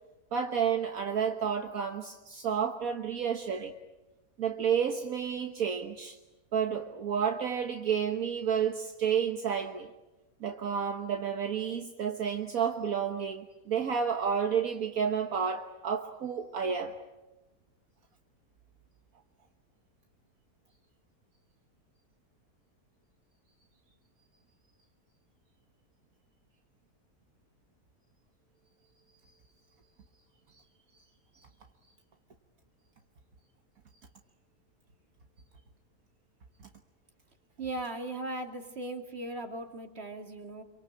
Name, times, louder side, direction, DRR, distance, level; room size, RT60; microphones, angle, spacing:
voice 1, 0.3-3.7 4.4-6.2 6.5-9.9 10.4-17.0, right 7 dB, 65° right, 1.7 m, -30 dB
voice 2, 37.6-40.6, right 2 dB, 40° right, 2.9 m, -38 dB
27.0 x 24.5 x 8.8 m
omnidirectional pair, 1.6 m